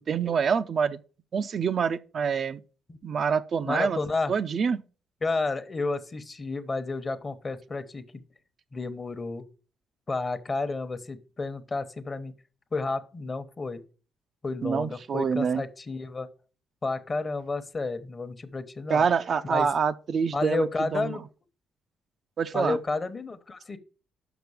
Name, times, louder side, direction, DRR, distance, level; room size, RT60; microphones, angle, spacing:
voice 1, 0.1-1.0 1.3-2.6 3.0-4.0 4.3-4.8 14.6-15.6 18.9-21.2 22.4-22.8, right 6 dB, 50° right, 0.5 m, -26 dB
voice 2, 3.7-4.3 5.2-8.2 8.7-9.4 10.1-12.3 12.7-13.8 14.4-16.3 16.8-19.0 19.5-19.7 20.3-21.2 22.5-23.8, left 3 dB, 30° left, 1.0 m, -31 dB
6.0 x 5.9 x 7.0 m
cardioid pair, 90°, 0 cm